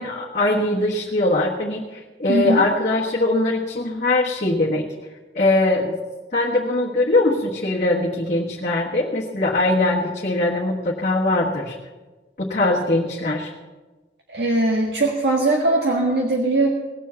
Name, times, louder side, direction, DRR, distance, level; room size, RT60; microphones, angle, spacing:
voice 1, 0.0-4.8 5.3-5.9 6.3-11.8 12.4-13.5, left 2 dB, 45° left, -5 dB, 1.4 m, -21 dB
voice 2, 2.3-2.7 14.3-16.7, right 2 dB, 70° right, -1 dB, 1.6 m, -20 dB
18.0 x 7.4 x 7.0 m, 1.2 s
head